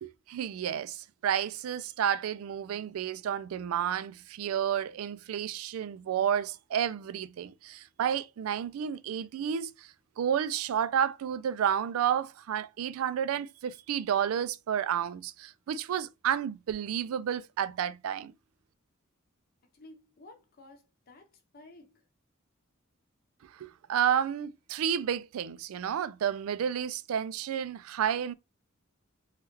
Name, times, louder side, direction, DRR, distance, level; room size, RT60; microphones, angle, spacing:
voice 1, 0.0-9.9 10.2-18.3 23.5-28.3, right 9 dB, 85° right, 0.3 m, -31 dB
voice 2, 19.6-22.0, left 2 dB, 45° left, 0.7 m, -54 dB
3.3 x 2.3 x 3.0 m
head